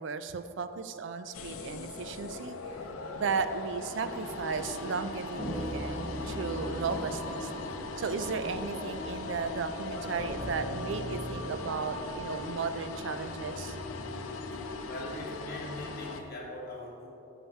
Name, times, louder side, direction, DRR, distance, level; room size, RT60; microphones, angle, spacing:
voice 1, 0.0-2.6 3.1-7.5 8.0-13.8, right 5 dB, 60° right, 10 dB, 0.4 m, -35 dB
sound 1, 1.3-16.2, left 3 dB, 90° left, 0.5 m, -40 dB
Boat Water vehicle, 2.7-14.1, left 1 dB, 70° left, 1.3 m, -48 dB
sound 2, 5.4-15.0, equal, 10° left, 1.1 m, -41 dB
voice 2, 14.8-17.1, left 1 dB, 45° left, -3 dB, 1.4 m, -41 dB
6.9 x 5.7 x 4.4 m, 2.9 s
head